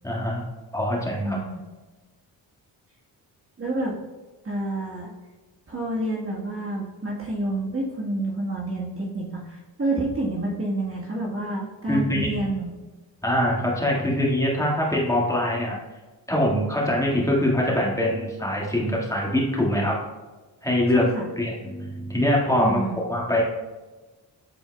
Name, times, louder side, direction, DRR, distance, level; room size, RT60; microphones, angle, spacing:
voice 1, 0.0-0.4 0.7-1.4 11.9-12.3 13.2-15.8 16.3-20.0 20.6-21.1 21.4-23.4, left 1 dB, 5° left, -4 dB, 1.8 m, -23 dB
voice 2, 1.2-1.6 3.6-3.9 4.4-5.1 5.7-12.7 20.9-21.3 22.6-23.0, right 1 dB, 30° right, -4 dB, 1.4 m, -28 dB
11.5 x 4.4 x 2.3 m, 1.2 s
cardioid pair, 70°, 46 cm